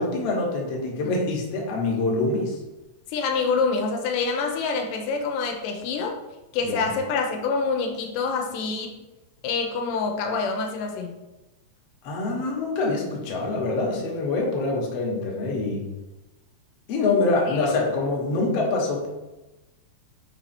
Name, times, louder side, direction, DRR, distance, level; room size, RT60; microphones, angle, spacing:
voice 1, 0.0-2.6 6.6-6.9 12.0-15.8 16.9-19.1, left 3 dB, 60° left, -1 dB, 2.0 m, -25 dB
voice 2, 3.1-6.2 6.5-9.0 9.4-11.2 17.5-17.7, left 4 dB, 90° left, 4 dB, 2.3 m, -26 dB
5.7 x 4.2 x 4.3 m, 1.0 s
omnidirectional pair, 3.6 m